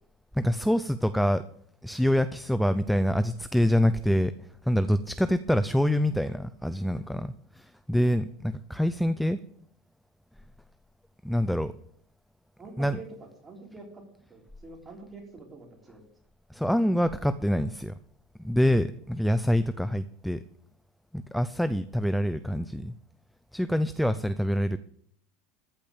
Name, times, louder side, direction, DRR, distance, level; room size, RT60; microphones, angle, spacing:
voice 1, 0.3-1.5 1.8-9.4 11.2-11.7 12.8-13.0 16.5-18.0 18.4-20.4 21.1-22.9 23.5-24.8, equal, ahead, 12 dB, 0.4 m, -26 dB
voice 2, 12.6-14.0 14.3-16.0, right 3 dB, 20° right, 0 dB, 3.8 m, -46 dB
14.0 x 5.3 x 8.7 m, 0.68 s
supercardioid pair, 135°, 0 cm